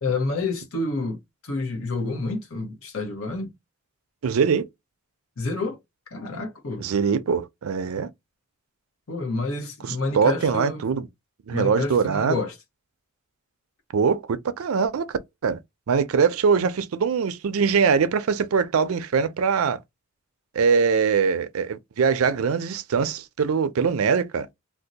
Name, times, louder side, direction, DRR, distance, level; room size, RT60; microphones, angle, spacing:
voice 1, 0.0-3.5 5.4-5.8 6.1-6.9 9.1-10.8 11.5-12.5, left 3 dB, 80° left, 0.9 m, -29 dB
voice 2, 4.2-4.6 6.8-8.1 9.8-11.0 11.5-12.4 13.9-15.6 15.9-19.8 20.5-24.5, right 6 dB, 85° right, 0.4 m, -22 dB
2.6 x 2.1 x 3.9 m
head